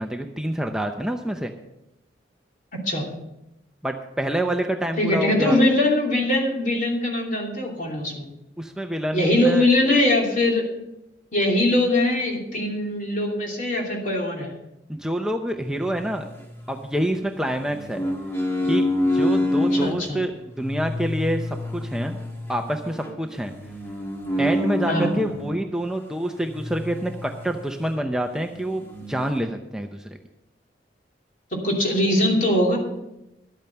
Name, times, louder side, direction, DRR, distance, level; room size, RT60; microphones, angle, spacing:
voice 1, 0.0-1.5 3.8-5.6 8.6-9.7 14.9-16.3 16.7-18.0 18.7-18.9 19.1-22.2 22.5-23.5 24.4-30.2, right 1 dB, 5° right, 4 dB, 0.6 m, -27 dB
voice 2, 5.0-8.3 9.1-10.6 11.3-14.5 19.7-20.2 24.9-25.2 31.5-32.8, left 1 dB, 45° left, -1 dB, 2.9 m, -22 dB
sound 1, 15.8-17.0 17.5-20.0 20.5-25.6 26.4-27.6 28.0-28.1 28.4-29.4, left 1 dB, 15° left, 1.6 m, -27 dB
12.0 x 8.8 x 5.8 m, 0.91 s
head